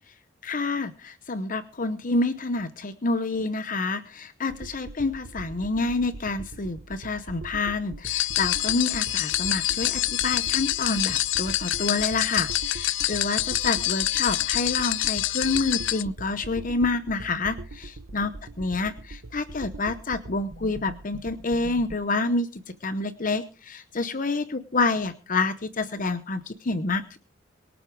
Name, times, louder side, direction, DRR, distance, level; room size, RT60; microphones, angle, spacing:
voice 1, 0.4-18.3 18.6-27.2, left 3 dB, 45° left, 11 dB, 0.8 m, -28 dB
sound 1, 4.5-22.0, right 2 dB, 85° right, 0.9 m, -42 dB
sound 2, 8.0-16.0, left 15 dB, 75° left, 0.6 m, -26 dB
23.5 x 8.0 x 4.7 m, 0.36 s
head